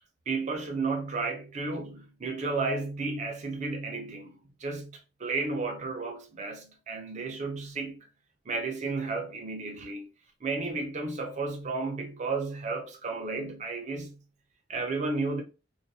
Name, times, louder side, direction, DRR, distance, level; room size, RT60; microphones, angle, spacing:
voice 1, 0.3-8.1 8.5-10.1 10.4-14.2 14.7-15.4, right 3 dB, 40° right, 0.5 m, -33 dB
2.3 x 2.2 x 2.7 m
head